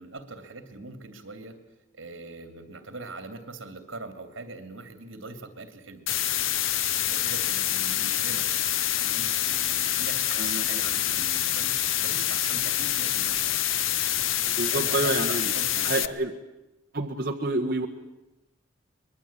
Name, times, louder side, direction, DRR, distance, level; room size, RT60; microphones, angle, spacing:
voice 1, 0.0-1.6 1.9-6.0 7.1-8.5 9.0-13.4 14.6-16.2, right 3 dB, 70° right, 9 dB, 2.8 m, -42 dB
sound 1, 6.1-16.1, left 11 dB, 75° left, 0.8 m, -26 dB
voice 2, 10.4-10.8 14.5-15.5 15.8-16.3 16.9-17.9, right 2 dB, 45° right, 0 dB, 1.5 m, -28 dB
24.5 x 21.5 x 8.9 m, 0.98 s
head